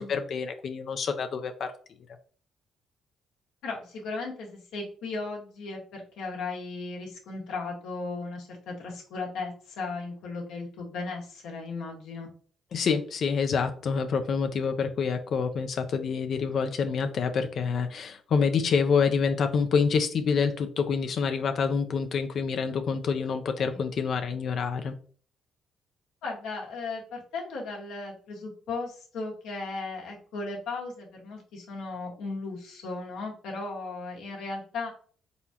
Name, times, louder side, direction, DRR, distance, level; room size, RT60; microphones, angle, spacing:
voice 1, 0.0-1.7 12.7-24.9, left 5 dB, 60° left, 7 dB, 0.5 m, -27 dB
voice 2, 3.6-12.3 23.7-23.8 26.2-34.9, left 3 dB, 90° left, -1 dB, 1.5 m, -36 dB
4.1 x 3.7 x 2.8 m, 0.44 s
cardioid pair, 90°, 0 cm